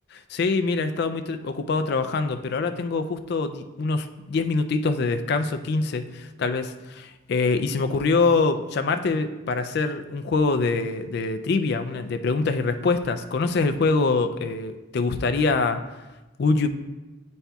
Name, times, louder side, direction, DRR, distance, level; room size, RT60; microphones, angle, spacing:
voice 1, 0.3-15.8 16.4-16.7, left 3 dB, 50° left, 9 dB, 0.3 m, -24 dB
10.0 x 4.1 x 2.3 m, 1.1 s
head